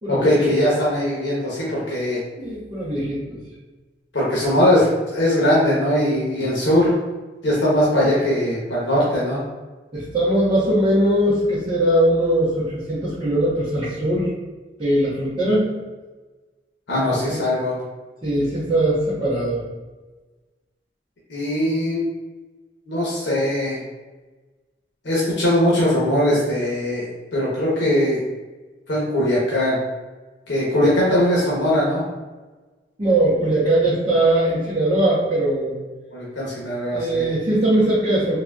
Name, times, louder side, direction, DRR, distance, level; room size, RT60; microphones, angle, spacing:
voice 1, 0.1-2.2 4.1-6.9 7.4-9.4 16.9-17.8 21.3-22.0 22.9-23.8 25.0-28.2 28.9-29.8 30.5-32.0 36.1-37.3, left 1 dB, 85° left, -6 dB, 1.0 m, -20 dB
voice 2, 2.4-3.4 9.9-14.3 14.8-15.7 17.1-17.4 18.2-19.6 33.0-35.8 36.9-38.4, right 1 dB, 30° right, -12 dB, 1.0 m, -20 dB
3.9 x 3.0 x 2.3 m, 1.2 s
head